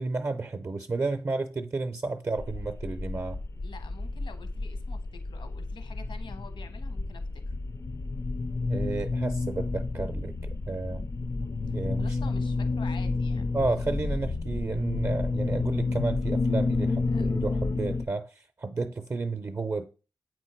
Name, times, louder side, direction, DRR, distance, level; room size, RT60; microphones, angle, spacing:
voice 1, 0.0-3.4 8.7-11.0 11.7-12.2 13.5-19.9, right 3 dB, 35° right, 0.5 m, -32 dB
sound 1, 2.4-18.1, left 3 dB, 35° left, 0.4 m, -30 dB
voice 2, 3.6-7.5 11.7-13.4 17.1-17.3, left 4 dB, 80° left, 1.1 m, -47 dB
8.2 x 4.4 x 4.4 m
wide cardioid pair, 90°, 8 cm